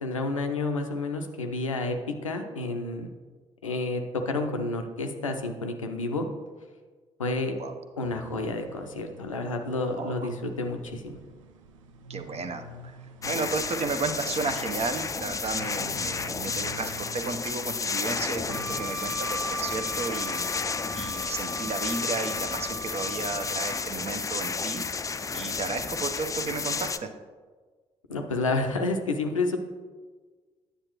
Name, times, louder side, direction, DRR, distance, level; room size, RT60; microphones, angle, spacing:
voice 1, 0.0-3.1 3.6-6.3 7.2-7.5 8.0-11.2 28.1-29.6, left 2 dB, 90° left, 5 dB, 0.5 m, -30 dB
sound 1, 8.0-18.9, right 2 dB, 80° right, 0.4 m, -47 dB
voice 2, 9.9-10.3 12.1-13.0 13.2-20.4 20.9-24.8 25.3-27.1, right 4 dB, 40° right, 8 dB, 0.8 m, -33 dB
sound 2, 13.2-27.0, left 5 dB, 20° left, 0.4 m, -32 dB
Bowed string instrument, 18.5-23.9, right 2 dB, ahead, 1.6 m, -39 dB
8.8 x 6.8 x 3.0 m, 1.4 s
figure-of-eight pair, 40°, 16 cm